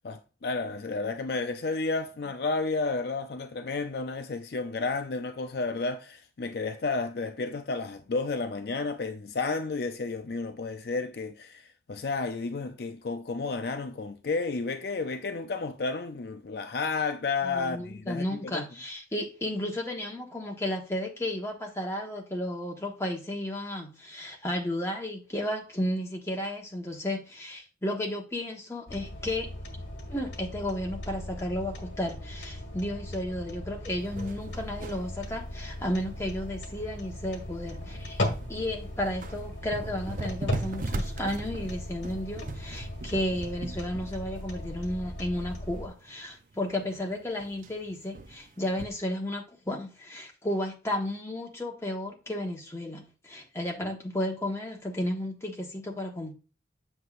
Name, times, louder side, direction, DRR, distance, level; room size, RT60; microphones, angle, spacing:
voice 1, 0.0-11.6 11.9-18.6 53.8-53.9, left 3 dB, 55° left, 0.4 m, -32 dB
voice 2, 17.4-29.5 30.1-38.2 38.5-56.3, left 1 dB, 15° left, 1.2 m, -33 dB
sound 1, 28.9-45.9, left 1 dB, 80° left, 1.6 m, -38 dB
sound 2, 34.0-48.9, right 2 dB, 45° right, 0.5 m, -41 dB
7.9 x 6.6 x 2.5 m
head